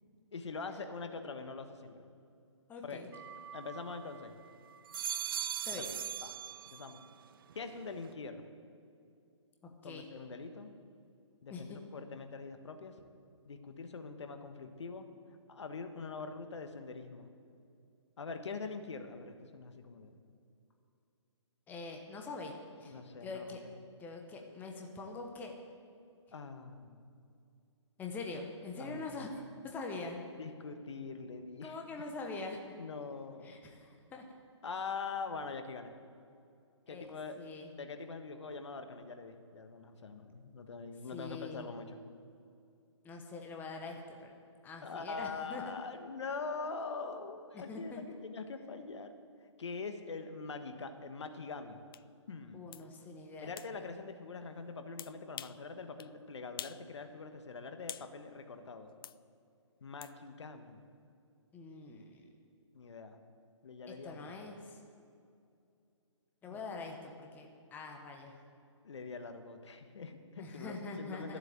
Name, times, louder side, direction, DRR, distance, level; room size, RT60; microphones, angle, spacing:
voice 1, 0.3-2.0 2.8-3.0 3.5-4.3 6.2-6.4 6.7-7.0 7.5-8.5 9.8-10.7 11.4-12.9 13.5-15.1 15.5-17.3 18.2-20.2 22.9-23.8 26.3-27.1 28.8-29.2 30.4-31.8 32.7-33.6 34.6-35.9 36.9-42.0 44.8-49.1 49.6-51.8 52.3-52.6 53.4-58.9 59.8-60.8 62.7-63.2 63.6-64.6 66.5-66.6 68.8-71.4, left 4 dB, 65° left, 7 dB, 1.3 m, -43 dB
voice 2, 2.7-3.1 5.6-5.9 9.8-10.0 11.5-11.8 21.7-23.6 24.0-25.5 28.0-29.3 29.6-30.2 31.6-32.6 33.4-34.2 36.9-37.1 37.4-37.7 41.1-41.7 43.0-44.3 44.6-45.6 47.5-48.0 52.5-53.9 61.5-62.2 64.0-64.8 66.4-68.4 70.4-71.4, left 3 dB, 10° left, 2 dB, 1.1 m, -44 dB
sound 1, 3.1-4.3 4.7-7.1 7.5-8.1, right 9 dB, 45° right, 0.4 m, -41 dB
sound 2, 51.9-52.0 52.7-52.9 53.6-53.7 55.0-55.6 56.0-56.1 56.6-56.8 57.2-58.1 59.0-59.2 60.0-60.1, left 9 dB, 50° left, 0.4 m, -46 dB
13.0 x 7.8 x 8.6 m, 2.4 s
figure-of-eight pair, 140°, 16 cm